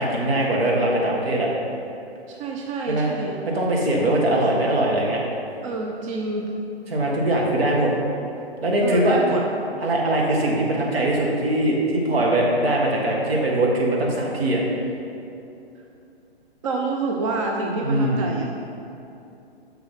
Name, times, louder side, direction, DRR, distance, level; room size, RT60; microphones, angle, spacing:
voice 1, 0.0-1.5 2.9-3.1 3.5-5.2 6.9-7.9 8.6-9.4 9.8-14.6 17.8-18.2, right 1 dB, 65° right, -2 dB, 1.9 m, -21 dB
voice 2, 2.3-3.4 5.6-6.5 8.8-9.4 16.6-18.4, right 3 dB, 30° right, 0 dB, 0.6 m, -27 dB
6.9 x 6.1 x 5.7 m, 2.7 s
figure-of-eight pair, 135°, 33 cm